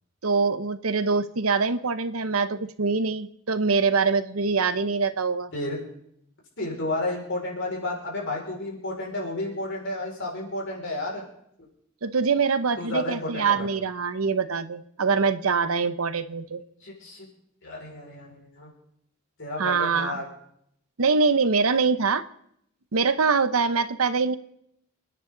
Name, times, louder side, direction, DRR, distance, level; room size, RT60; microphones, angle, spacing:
voice 1, 0.2-5.5 12.0-16.6 19.6-20.2 21.0-22.2 22.9-24.4, right 4 dB, 85° right, 13 dB, 0.9 m, -24 dB
voice 2, 5.5-5.8 6.6-11.2 11.6-11.7 12.8-13.7 16.8-17.3 17.6-18.7 19.4-20.2, left 2 dB, 60° left, -2 dB, 5.6 m, -32 dB
28.0 x 10.0 x 3.9 m, 0.73 s
head